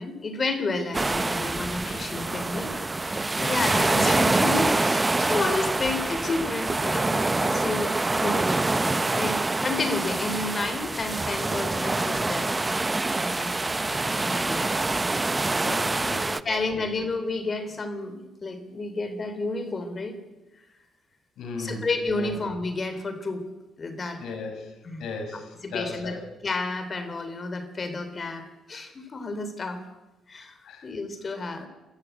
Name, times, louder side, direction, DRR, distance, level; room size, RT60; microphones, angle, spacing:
voice 1, 0.0-2.8 3.4-12.5 13.1-14.6 16.4-20.2 21.6-23.4 23.8-24.2 24.8-25.1 25.6-26.1 26.4-29.8 30.3-30.6 30.8-31.7, left 3 dB, 35° left, 8 dB, 3.7 m, -31 dB
sound 1, 0.9-16.4, right 2 dB, 20° right, 0.7 m, -26 dB
voice 2, 15.6-17.0 21.4-22.3 24.2-24.7 25.0-26.2 30.6-30.9, left 3 dB, 75° left, 5 dB, 5.2 m, -37 dB
23.5 x 13.5 x 9.3 m, 1.0 s
cardioid pair, 90°, 0 cm